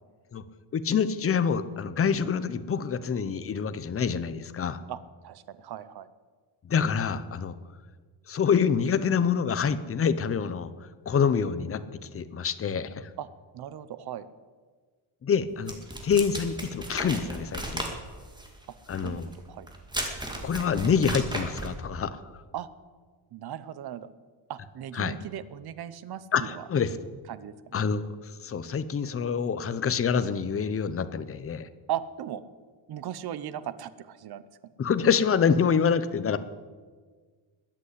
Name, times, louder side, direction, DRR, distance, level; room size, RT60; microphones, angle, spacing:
voice 1, 0.7-4.8 6.6-7.5 8.3-11.8 12.1-13.1 15.2-15.8 16.0-17.8 18.9-19.3 20.4-22.2 24.9-25.2 26.3-27.0 27.7-31.7 34.8-36.4, left 6 dB, 30° left, 13 dB, 0.7 m, -26 dB
voice 2, 5.2-6.1 13.2-13.3 13.5-14.3 19.0-19.2 19.5-19.7 22.5-22.7 23.3-24.1 24.5-26.6 27.3-27.8 31.9-32.5 32.9-34.7, right 10 dB, 50° right, 15 dB, 0.9 m, -37 dB
sound 1, 15.7-21.8, right 1 dB, 10° right, 2.1 m, -35 dB
21.0 x 8.3 x 8.2 m, 1.5 s
cardioid pair, 175°, 49 cm